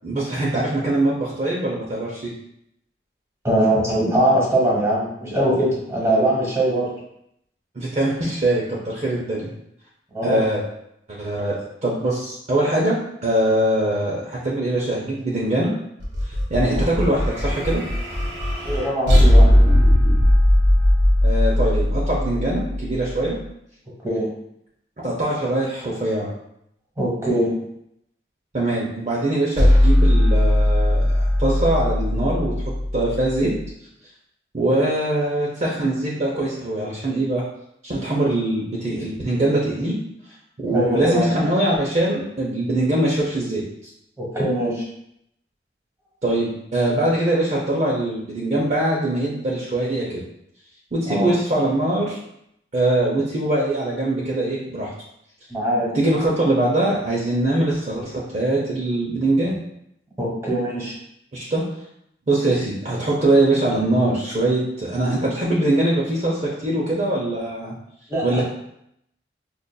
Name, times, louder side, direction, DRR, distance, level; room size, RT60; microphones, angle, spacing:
voice 1, 0.0-2.3 7.8-9.5 10.2-10.6 11.1-15.7 16.5-17.8 21.2-23.4 25.0-26.3 28.5-32.5 32.9-33.5 34.5-37.4 37.8-40.0 40.6-43.7 46.2-50.2 50.9-52.2 52.7-54.9 55.9-59.6 61.3-61.7 62.3-67.7 68.2-68.4, right 1 dB, 40° right, -5 dB, 0.5 m, -22 dB
voice 2, 3.4-6.9 10.1-10.4 18.6-19.5 24.0-24.3 27.0-27.5 40.7-41.3 44.2-44.8 51.1-51.3 55.5-55.9 60.2-60.9 68.1-68.4, right 1 dB, 15° right, -4 dB, 1.0 m, -21 dB
sound 1, 16.0-23.3 29.6-33.7, left 1 dB, 85° right, 1.1 m, -18 dB
5.1 x 2.4 x 2.2 m, 0.76 s
head